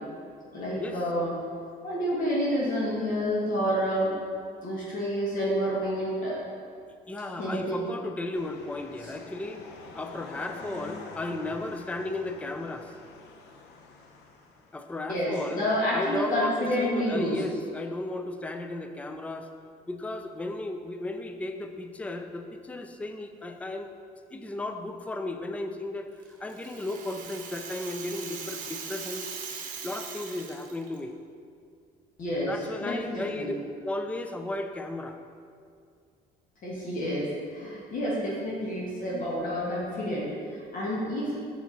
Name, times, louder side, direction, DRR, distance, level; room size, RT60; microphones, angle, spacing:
voice 1, 0.5-1.3 1.8-4.1 4.6-6.4 7.4-7.8 9.0-9.1 15.1-17.4 32.2-32.5 32.8-33.6 36.6-41.3, equal, 55° left, -6 dB, 1.8 m, -29 dB
voice 2, 7.1-9.7 9.9-12.9 14.7-15.6 15.9-19.5 19.9-23.9 24.3-26.1 26.4-29.3 29.8-31.1 32.5-33.6 33.8-35.2, left 2 dB, 10° left, 6 dB, 0.4 m, -35 dB
sound 1, 8.3-15.0, left 3 dB, 85° left, 0.8 m, -46 dB
Rattle (instrument), 26.2-31.0, right 6 dB, 55° right, 1.0 m, -40 dB
6.4 x 6.3 x 4.0 m, 2.3 s
cardioid pair, 110°, 17 cm